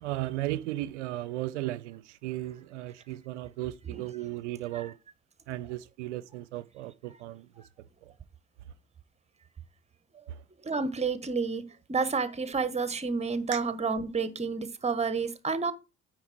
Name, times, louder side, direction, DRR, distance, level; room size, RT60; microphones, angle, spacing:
voice 1, 0.0-5.0 5.5-7.5 8.0-8.1 10.3-10.4 13.5-13.6, right 15 dB, 70° right, 0.5 m, -35 dB
voice 2, 10.6-11.6 11.9-15.7, right 4 dB, 20° right, 1.1 m, -29 dB
9.3 x 4.6 x 4.5 m
figure-of-eight pair, 55°, 36 cm